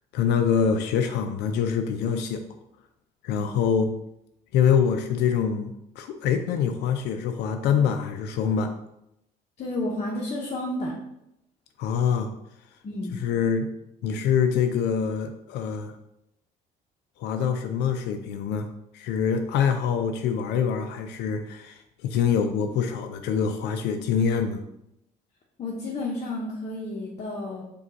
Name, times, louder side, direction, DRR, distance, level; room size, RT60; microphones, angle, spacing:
voice 1, 0.1-2.4 3.2-3.9 4.5-8.7 11.8-12.3 13.1-13.7 14.0-15.9 17.2-18.7 18.9-24.6, left 7 dB, 80° left, 6 dB, 0.4 m, -25 dB
voice 2, 9.6-10.9 12.8-13.2 25.6-27.6, left 2 dB, 40° left, -2 dB, 0.8 m, -31 dB
5.0 x 2.3 x 4.0 m, 0.83 s
cardioid pair, 110°, 17 cm